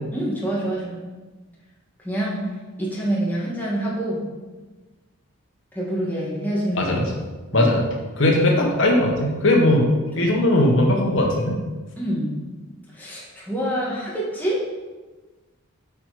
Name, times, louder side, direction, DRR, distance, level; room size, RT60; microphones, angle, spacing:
voice 1, 0.1-1.0 2.0-2.5 2.8-4.2 5.7-6.9 7.5-7.7 8.3-8.4 10.0-10.3 12.0-12.4 12.9-14.6, right 1 dB, 10° left, -6 dB, 1.8 m, -26 dB
voice 2, 6.7-7.1 7.5-7.8 8.2-9.9 10.2-11.6, left 1 dB, 65° left, 0 dB, 1.4 m, -19 dB
8.4 x 4.9 x 4.9 m, 1.3 s
head